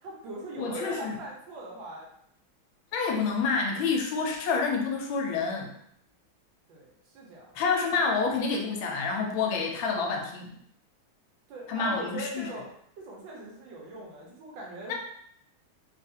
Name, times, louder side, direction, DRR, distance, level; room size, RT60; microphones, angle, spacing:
voice 1, 0.0-2.1 6.7-7.6 11.5-12.7 13.0-14.9, right 2 dB, 70° right, -2 dB, 1.4 m, -40 dB
voice 2, 0.6-1.2 2.9-5.7 7.5-10.5 11.7-12.5 14.9-15.0, left 4 dB, 80° left, 1 dB, 1.3 m, -28 dB
3.5 x 2.4 x 2.7 m, 0.70 s
omnidirectional pair, 2.2 m